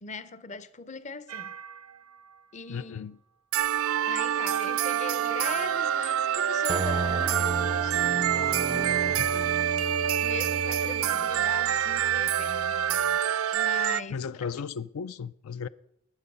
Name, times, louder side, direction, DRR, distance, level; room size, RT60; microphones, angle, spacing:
voice 1, 0.0-1.6 2.5-3.1 4.1-9.0 10.2-12.8 13.1-13.2 13.5-14.5, left 4 dB, 35° left, 0.6 m, -40 dB
sound 1, 1.3-1.9 3.5-14.0, right 10 dB, 80° right, 0.5 m, -27 dB
voice 2, 2.7-3.2 9.2-9.5 14.1-15.7, left 6 dB, 80° left, 0.4 m, -35 dB
sound 2, 6.7-13.2, right 3 dB, 25° right, 0.4 m, -35 dB
20.0 x 7.7 x 5.3 m
head